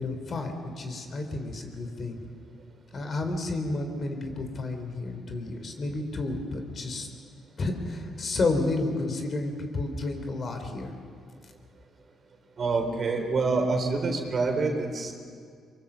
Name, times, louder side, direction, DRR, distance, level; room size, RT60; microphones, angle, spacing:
voice 1, 0.0-2.2 2.9-7.1 7.6-10.9, left 2 dB, 45° left, 6 dB, 3.6 m, -31 dB
voice 2, 12.6-15.1, right 3 dB, 45° right, 3 dB, 3.8 m, -26 dB
24.0 x 23.0 x 7.3 m, 2.1 s
cardioid pair, 90°, 0 cm